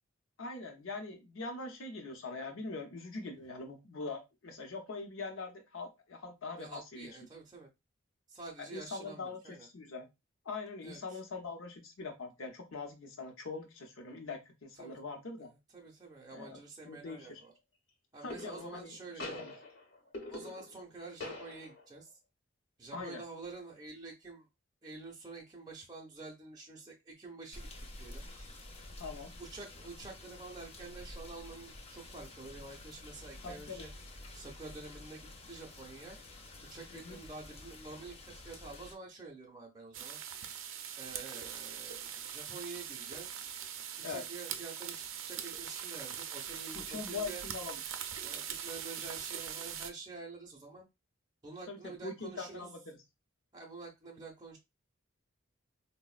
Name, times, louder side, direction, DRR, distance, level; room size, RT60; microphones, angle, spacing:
voice 1, 0.4-7.2 8.7-10.1 10.4-15.5 16.3-17.4 18.2-19.0 19.2-19.5 22.9-23.2 29.0-29.4 33.4-33.9 36.9-37.2 44.0-44.2 46.7-47.8 51.7-52.8, left 3 dB, 90° left, 3 dB, 0.7 m, -42 dB
voice 2, 6.6-7.7 8.3-9.7 10.8-11.2 14.8-15.0 15.4-17.5 18.1-19.5 20.3-22.2 22.8-24.5 24.8-27.6 28.0-28.2 29.4-33.9 34.3-36.2 36.7-40.2 41.0-43.5 44.0-47.4 48.2-50.9 51.4-52.7 53.5-54.6, right 3 dB, 20° right, -1 dB, 0.5 m, -48 dB
sound 1, 17.0-17.4 18.3-18.9 19.2-20.9 21.2-22.0, left 2 dB, 60° left, 0.9 m, -45 dB
sound 2, 27.5-39.0, left 1 dB, 30° left, 0.5 m, -50 dB
sound 3, 39.9-49.9, right 9 dB, 80° right, 0.4 m, -42 dB
3.9 x 2.0 x 2.4 m, 0.23 s
head